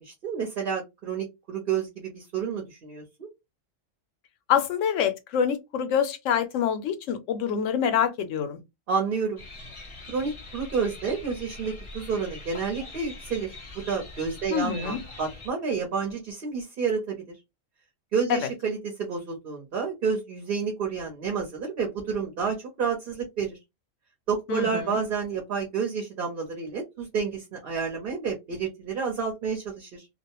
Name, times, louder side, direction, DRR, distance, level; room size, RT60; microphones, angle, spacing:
voice 1, 0.0-3.3 8.9-9.4 10.1-13.5 13.9-17.3 18.1-23.6 24.3-30.1, right 5 dB, 50° right, 0.9 m, -30 dB
voice 2, 4.5-8.6 14.5-15.0 18.3-18.4 24.5-25.0, left 8 dB, 80° left, 0.9 m, -26 dB
sound 1, 9.4-15.5, left 2 dB, 30° left, 0.6 m, -43 dB
2.4 x 2.1 x 2.9 m
omnidirectional pair, 1.3 m